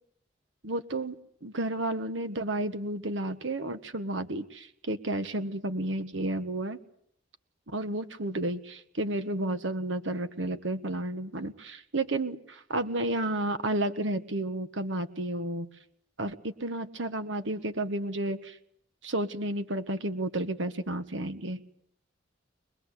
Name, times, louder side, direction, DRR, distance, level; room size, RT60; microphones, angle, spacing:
voice 1, 0.6-1.2 1.4-6.8 7.7-15.7 16.2-18.6 19.0-21.6, right 1 dB, 75° right, 10 dB, 1.5 m, -32 dB
25.0 x 20.5 x 8.3 m, 0.68 s
head